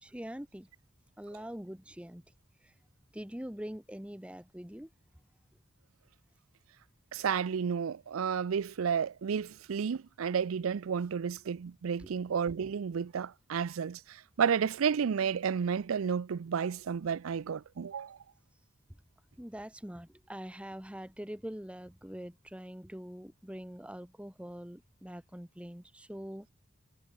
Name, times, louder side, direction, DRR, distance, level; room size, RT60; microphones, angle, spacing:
voice 1, 0.0-0.7 1.2-2.2 2.6-2.7 3.1-4.9 12.0-12.1 19.4-26.5, equal, 5° right, 1.0 m, -44 dB
voice 2, 7.1-18.2, right 7 dB, 90° right, 0.4 m, -31 dB
head